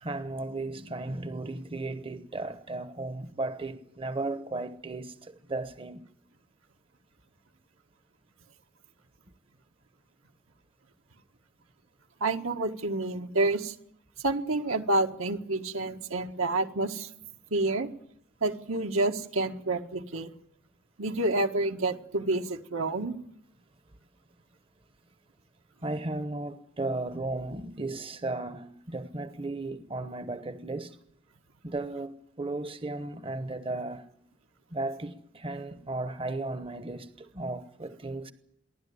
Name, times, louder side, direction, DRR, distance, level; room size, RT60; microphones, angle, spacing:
voice 1, 0.0-6.0 25.8-31.0 31.6-34.1 34.7-38.3, right 2 dB, 25° right, 1.0 m, -35 dB
voice 2, 12.2-13.7 14.2-17.1 17.5-17.9 18.4-20.3 21.0-23.2, right 2 dB, 80° right, 1.8 m, -28 dB
29.0 x 11.5 x 9.6 m
head